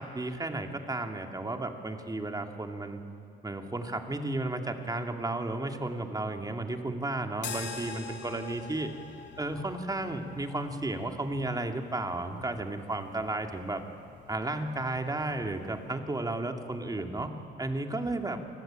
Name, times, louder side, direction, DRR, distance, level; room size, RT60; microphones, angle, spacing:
voice 1, 0.0-3.0 3.4-8.9 9.4-13.8 14.3-17.3 17.6-18.4, right 2 dB, 20° right, 4 dB, 2.6 m, -33 dB
sound 1, 7.4-15.9, left 5 dB, 65° left, 3.6 m, -46 dB
28.0 x 20.5 x 9.1 m, 2.5 s
cardioid pair, 90°, 20 cm